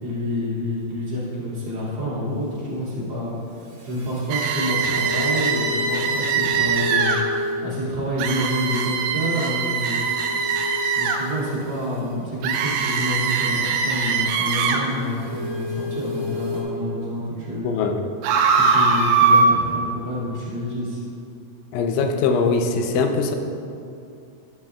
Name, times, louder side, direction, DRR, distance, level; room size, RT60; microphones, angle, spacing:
voice 1, 0.0-7.2 7.4-10.0 10.9-17.7 18.7-21.0, left 1 dB, 35° right, -9 dB, 2.3 m, -28 dB
sound 1, 3.6-7.8 8.5-12.2 14.7-16.6, left 2 dB, 55° right, 1.6 m, -32 dB
sound 2, 4.3-7.2 8.2-11.2 12.4-14.8 18.2-19.5, right 5 dB, 80° right, 2.3 m, -21 dB
voice 2, 17.6-18.0 21.7-23.4, left 4 dB, 85° left, 5 dB, 3.1 m, -21 dB
11.0 x 11.0 x 2.4 m, 2.6 s
omnidirectional pair, 5.2 m